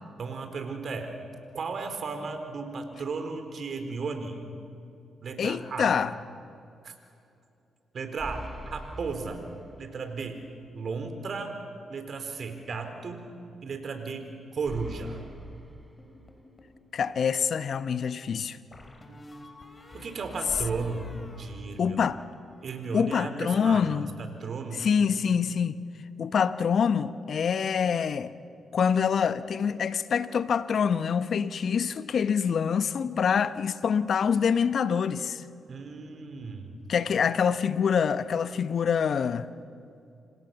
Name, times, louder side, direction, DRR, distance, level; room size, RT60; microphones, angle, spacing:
voice 1, 0.2-1.1 1.5-4.4 5.2-6.0 6.8-6.9 7.9-9.4 9.8-10.4 10.7-11.5 11.9-13.3 13.6-15.2 19.9-22.0 22.6-23.9 24.2-24.9 35.7-36.7, right 4 dB, 55° right, 4.3 m, -35 dB
voice 2, 5.4-6.1 16.9-18.6 21.8-22.2 22.9-24.1 24.7-25.8 26.2-28.3 28.7-35.4 36.9-39.5, left 7 dB, 60° left, 1.0 m, -25 dB
sound 1, 8.2-10.2 10.5-10.6 14.6-16.6 20.5-22.4, equal, 5° right, 4.4 m, -44 dB
sound 2, 16.0-16.8 18.7-22.2 22.5-23.0, left 1 dB, 35° left, 4.9 m, -50 dB
29.0 x 27.5 x 7.1 m
hypercardioid pair, 45°, 0 cm